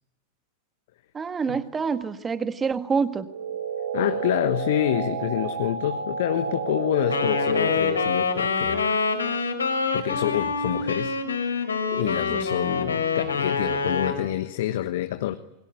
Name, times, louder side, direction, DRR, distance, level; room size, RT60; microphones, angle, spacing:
voice 1, 1.1-3.3 12.3-12.5, right 5 dB, 20° right, 11 dB, 1.7 m, -27 dB
sound 1, 3.3-8.2, right 7 dB, 75° right, 5.1 m, -31 dB
voice 2, 3.9-8.9 9.9-11.1 11.5-15.3, left 13 dB, 55° left, 9 dB, 1.2 m, -27 dB
Wind instrument woodwind instrument, 7.1-14.2, left 4 dB, 75° left, 4.7 m, -26 dB
28.5 x 22.0 x 9.2 m, 0.93 s
figure-of-eight pair, 90°, 0 cm